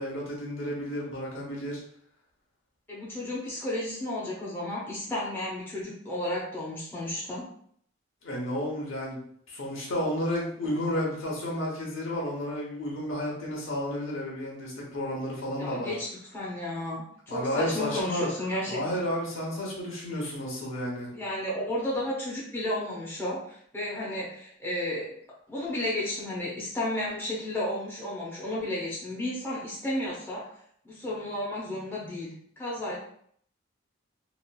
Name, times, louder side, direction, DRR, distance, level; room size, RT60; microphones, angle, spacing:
voice 1, 0.0-1.8 8.2-9.2 9.5-15.9 17.3-18.3 18.7-21.1, equal, 75° left, -3 dB, 0.9 m, -32 dB
voice 2, 2.9-7.4 15.6-19.0 21.1-25.1 25.5-30.5 30.8-33.0, left 1 dB, 10° left, -7 dB, 0.7 m, -33 dB
2.9 x 2.4 x 2.2 m, 0.64 s
head